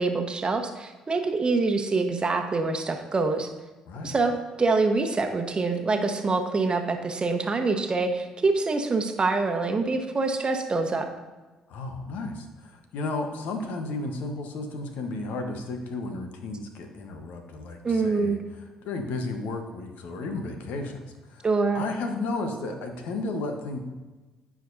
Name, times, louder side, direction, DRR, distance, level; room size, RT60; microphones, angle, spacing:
voice 1, 0.0-3.5 4.0-11.1 17.8-18.4 21.4-21.8, right 3 dB, 35° right, 6 dB, 1.1 m, -25 dB
voice 2, 11.7-18.4 18.8-21.0 21.3-21.5 21.7-23.8, left 3 dB, 65° left, 5 dB, 1.1 m, -33 dB
15.0 x 5.0 x 2.7 m, 1.2 s
hypercardioid pair, 50°, 3 cm